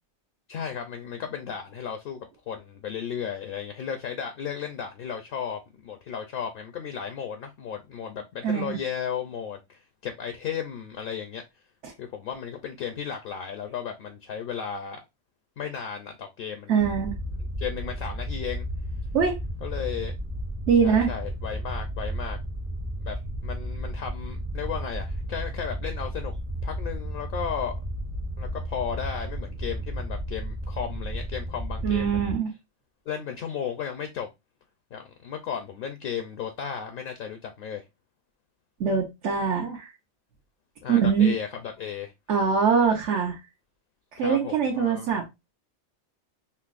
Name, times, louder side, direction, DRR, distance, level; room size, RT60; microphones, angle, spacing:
voice 1, 0.5-11.4 12.0-15.0 15.6-16.9 17.6-18.6 19.6-20.2 20.8-22.4 23.0-23.2 23.4-26.3 26.6-27.8 28.4-32.4 33.1-34.3 34.9-37.8 40.8-42.1 44.2-45.1, left 7 dB, 60° left, 0.6 m, -34 dB
voice 2, 8.4-8.8 11.8-11.9 16.7-17.2 19.1-19.4 20.7-21.1 31.8-32.5 38.8-39.9 40.9-41.3 42.3-43.4 44.1-45.2, right 6 dB, 80° right, 1.1 m, -23 dB
sound 1, 16.8-32.3, equal, 25° right, 0.3 m, -33 dB
5.5 x 2.0 x 2.4 m
omnidirectional pair, 1.2 m